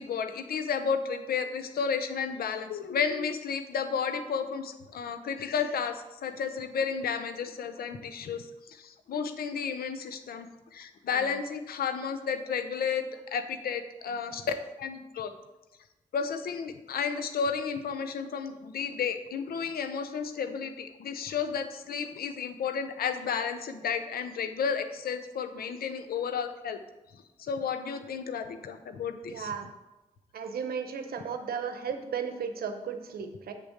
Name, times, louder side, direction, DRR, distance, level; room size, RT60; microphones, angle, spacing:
voice 1, 0.0-15.3 16.1-26.8 27.1-29.5, left 6 dB, 85° left, 8 dB, 0.6 m, -32 dB
voice 2, 29.3-29.7 30.3-33.5, right 6 dB, 85° right, 7 dB, 0.7 m, -35 dB
7.6 x 3.6 x 6.4 m, 1.0 s
cardioid pair, 45°, 15 cm